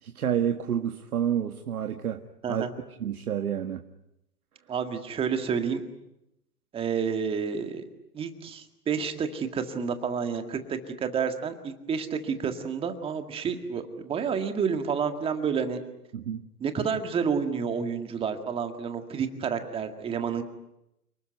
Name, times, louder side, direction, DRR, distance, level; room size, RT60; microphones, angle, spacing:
voice 1, 0.0-2.7 3.0-3.8 16.1-16.5, right 9 dB, 65° right, 7 dB, 1.8 m, -29 dB
voice 2, 4.7-5.8 6.7-7.8 8.1-15.8 16.6-20.4, right 6 dB, 10° right, 7 dB, 1.9 m, -29 dB
29.5 x 20.0 x 9.4 m, 0.85 s
hypercardioid pair, 140°, 48 cm